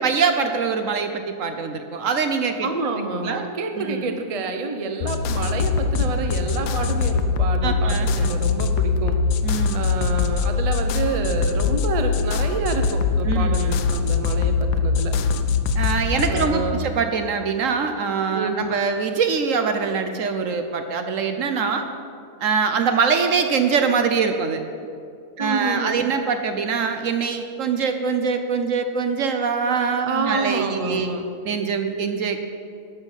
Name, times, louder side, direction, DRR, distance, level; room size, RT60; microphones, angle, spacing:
voice 1, 0.0-2.7 3.2-3.5 3.8-4.1 7.6-8.3 9.4-9.8 13.2-13.6 15.7-21.8 22.4-24.6 25.4-31.1 31.4-32.5, right 5 dB, 60° right, 7 dB, 1.0 m, -23 dB
voice 2, 2.6-9.2 9.7-15.2 16.3-16.9 18.3-18.7 25.4-26.1 30.0-31.3, right 3 dB, 35° right, 6 dB, 0.6 m, -28 dB
sound 1, 5.0-16.5, left 5 dB, 90° left, 1.2 m, -22 dB
12.5 x 5.8 x 7.2 m, 2.3 s
omnidirectional pair, 1.7 m